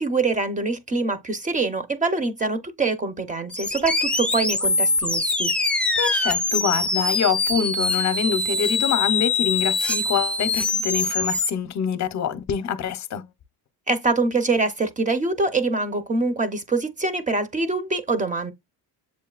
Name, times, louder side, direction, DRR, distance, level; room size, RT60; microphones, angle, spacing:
voice 1, 0.0-5.5 13.9-18.5, right 3 dB, 20° right, 0.8 m, -24 dB
sound 1, 3.5-11.5, left 3 dB, 5° left, 0.3 m, -23 dB
voice 2, 6.0-13.2, left 7 dB, 45° left, 0.7 m, -25 dB
7.4 x 2.6 x 2.4 m
cardioid pair, 125°, 40 cm